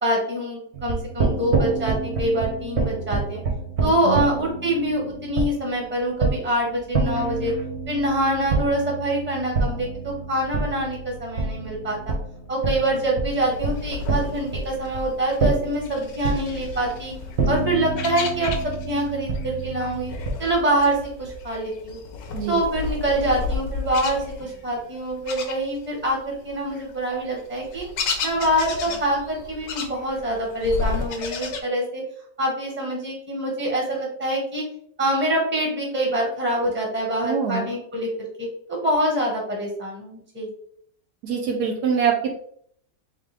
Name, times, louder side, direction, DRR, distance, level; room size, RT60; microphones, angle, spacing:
voice 1, 0.0-3.4 3.8-7.5 7.9-12.1 12.5-17.1 17.5-20.1 20.4-22.0 22.5-27.8 28.2-32.0 32.4-34.6 35.0-38.1 38.4-40.5, right 1 dB, 10° right, -1 dB, 1.1 m, -25 dB
sound 1, 0.7-20.3, right 4 dB, 50° right, 0.9 m, -28 dB
sound 2, 13.4-19.1 19.3-26.1 26.5-31.6, left 4 dB, 80° left, 1.4 m, -33 dB
voice 2, 37.2-37.7 41.2-42.4, right 7 dB, 75° right, 2 dB, 1.1 m, -24 dB
3.7 x 3.3 x 3.4 m, 0.64 s
omnidirectional pair, 1.9 m